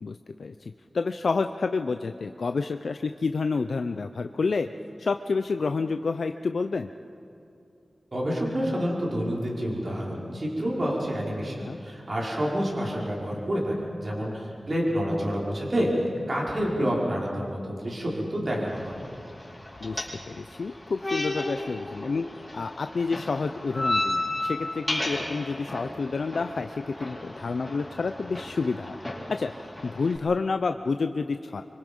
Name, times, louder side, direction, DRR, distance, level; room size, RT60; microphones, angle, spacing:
voice 1, 0.0-4.7 5.0-6.9 11.6-11.8 19.8-29.0 29.3-29.5 29.8-31.6, left 4 dB, 75° left, 7 dB, 0.6 m, -29 dB
voice 2, 8.1-19.0, equal, 45° right, -4 dB, 5.5 m, -28 dB
sound 1, 18.7-30.2, left 1 dB, 15° left, 4.7 m, -34 dB
25.5 x 25.0 x 5.5 m, 2.6 s
wide cardioid pair, 85°, 0 cm